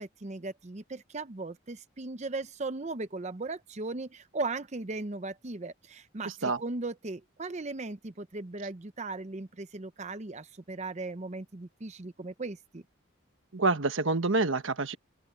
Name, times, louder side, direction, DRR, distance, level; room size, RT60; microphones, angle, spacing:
voice 1, 0.0-12.8, right 3 dB, 35° right, 0.7 m, -37 dB
voice 2, 6.2-6.6 13.5-15.0, right 3 dB, 70° right, 1.3 m, -27 dB
open air
head